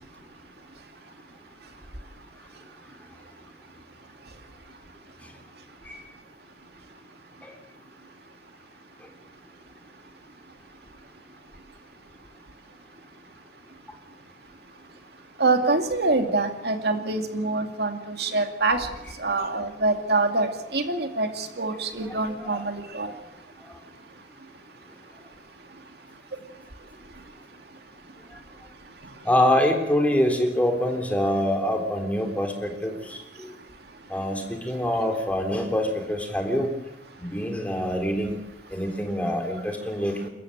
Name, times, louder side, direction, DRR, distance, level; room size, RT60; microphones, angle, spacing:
voice 1, 15.4-18.9 19.2-23.1, right 3 dB, 65° right, 5 dB, 2.4 m, -25 dB
voice 2, 29.3-33.2 34.1-36.7 37.2-38.4 38.7-40.3, left 1 dB, 10° left, 3 dB, 3.6 m, -25 dB
29.0 x 14.0 x 8.9 m, 0.97 s
head